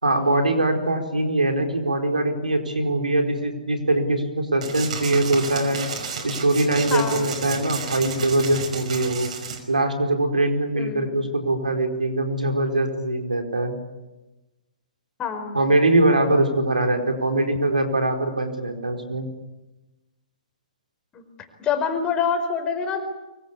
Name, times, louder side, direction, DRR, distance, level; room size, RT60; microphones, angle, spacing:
voice 1, 0.0-5.9 6.2-9.3 9.7-13.8 15.5-19.3, right 2 dB, 90° right, 5 dB, 4.5 m, -22 dB
sound 1, 4.6-9.6, right 5 dB, 60° right, 5.5 m, -32 dB
voice 2, 6.9-7.2 10.7-11.1 15.2-15.6 21.1-21.2 21.6-23.0, left 6 dB, 20° left, 7 dB, 4.9 m, -26 dB
24.0 x 24.0 x 8.5 m, 1.1 s
figure-of-eight pair, 125°, 4 cm